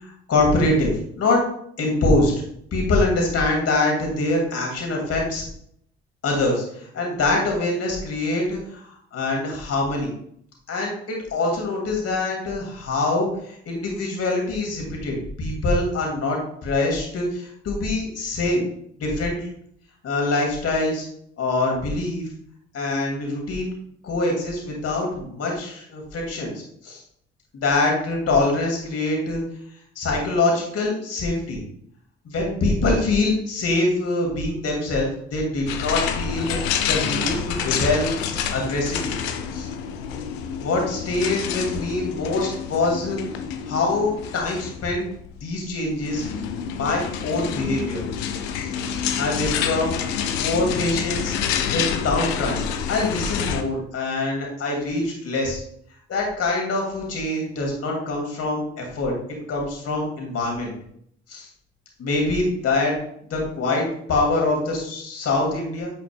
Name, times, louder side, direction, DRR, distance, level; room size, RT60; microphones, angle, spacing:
voice 1, 0.0-1.4 1.8-2.3 2.7-5.4 6.2-10.1 10.7-18.6 19.0-19.5 20.0-21.1 21.4-22.3 22.7-23.7 24.0-26.5 26.8-27.0 27.5-29.4 30.0-31.6 32.3-36.6 36.9-38.1 38.5-39.2 39.5-39.7 40.6-43.2 43.7-45.1 45.4-46.2 46.7-48.0 48.5-48.7 49.2-50.0 50.3-51.3 51.7-55.6 56.1-59.1 59.5-60.7 61.3-61.5 62.0-63.0 63.3-65.9, left 2 dB, 50° left, 0 dB, 2.4 m, -24 dB
sound 1, 35.7-53.6, left 8 dB, 70° left, 0.6 m, -28 dB
7.7 x 6.0 x 2.3 m, 0.67 s
figure-of-eight pair, 45°, 32 cm